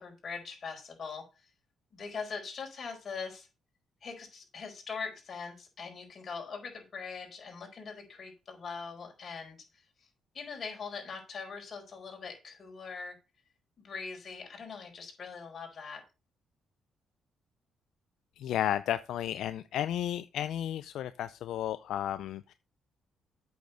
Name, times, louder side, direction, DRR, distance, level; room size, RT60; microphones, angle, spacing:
voice 1, 0.0-1.5 1.9-3.5 4.0-10.1 10.3-13.2 13.8-16.0, left 5 dB, 45° left, 4.4 m, -42 dB
voice 2, 18.4-22.5, left 11 dB, 80° left, 0.4 m, -33 dB
8.4 x 6.3 x 5.2 m
cardioid pair, 90°, 0 cm